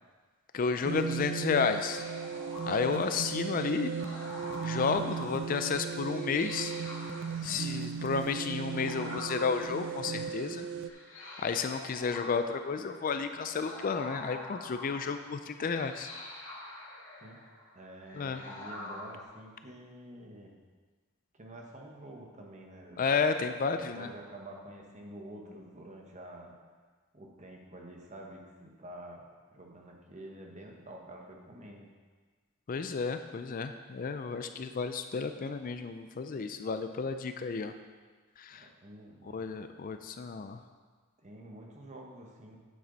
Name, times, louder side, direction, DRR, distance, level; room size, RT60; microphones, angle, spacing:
voice 1, 0.5-2.1 2.7-3.9 4.6-6.7 7.4-10.7 11.4-16.1 18.1-18.4 23.0-24.1 32.7-37.7 38.4-38.7 39.3-40.6, left 5 dB, 40° left, 8 dB, 0.4 m, -32 dB
sound 1, 0.8-10.9, right 6 dB, 60° right, 0.4 m, -37 dB
sound 2, 1.8-19.2, left 1 dB, 65° left, 2.3 m, -47 dB
voice 2, 17.7-20.6 21.3-23.1 23.9-26.5 27.1-31.8 38.5-39.4 41.2-42.6, right 1 dB, 35° right, 0 dB, 1.2 m, -48 dB
8.7 x 7.5 x 4.0 m, 1.4 s
head